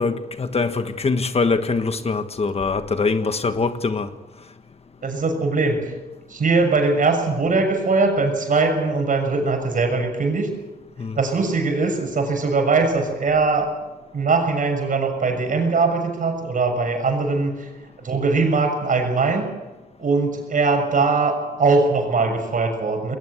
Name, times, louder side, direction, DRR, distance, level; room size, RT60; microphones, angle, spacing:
voice 1, 0.0-4.1 11.0-11.2, left 4 dB, 40° left, 1.4 m, -23 dB
voice 2, 5.0-5.9 6.3-10.5 11.1-13.7 14.1-17.7 18.0-19.5 20.0-23.1, right 3 dB, 55° right, 6.5 m, -21 dB
21.0 x 19.0 x 8.1 m
cardioid pair, 75°, 16 cm